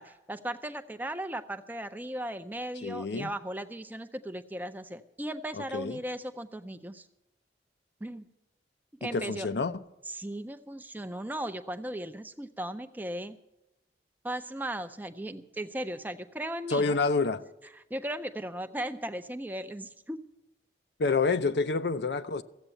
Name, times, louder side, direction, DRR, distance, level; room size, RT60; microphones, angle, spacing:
voice 1, 0.0-7.1 8.0-8.2 9.0-9.5 10.1-13.4 14.2-17.0 17.9-20.2, right 1 dB, 10° right, 0.5 m, -37 dB
voice 2, 2.8-3.3 5.5-6.0 9.0-9.7 16.7-17.4 21.0-22.4, left 4 dB, 70° left, 0.6 m, -28 dB
14.5 x 8.0 x 8.8 m
head